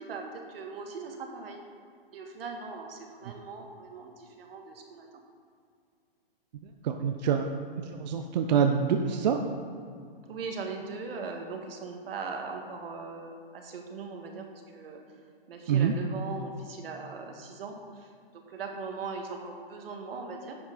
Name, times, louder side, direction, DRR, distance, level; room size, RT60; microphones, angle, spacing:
voice 1, 0.0-1.6 2.1-5.1 10.3-15.0 15.5-20.6, right 4 dB, 75° right, 2 dB, 1.7 m, -40 dB
voice 2, 6.8-7.5 7.8-9.4 15.7-15.9, right 7 dB, 45° right, 5 dB, 0.6 m, -26 dB
10.0 x 7.3 x 3.9 m, 2.3 s
hypercardioid pair, 170°, 30 cm